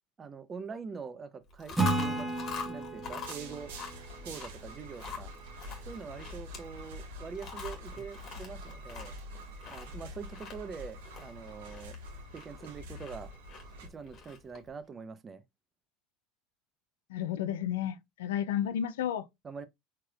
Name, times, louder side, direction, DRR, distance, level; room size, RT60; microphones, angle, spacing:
voice 1, 0.2-2.3 2.6-3.7 4.2-5.3 5.9-9.1 9.7-12.0 12.3-13.3 13.9-15.4 19.4-19.7, right 5 dB, 30° right, 0.6 m, -44 dB
Chewing mastication, 1.5-14.7, left 5 dB, 50° left, 1.5 m, -45 dB
Acoustic guitar / Strum, 1.8-5.2, right 2 dB, 10° right, 1.2 m, -34 dB
sound 1, 3.2-13.9, equal, 90° right, 1.1 m, -46 dB
voice 2, 17.1-19.3, left 10 dB, 90° left, 0.4 m, -32 dB
4.5 x 3.2 x 2.3 m
supercardioid pair, 100°, 0 cm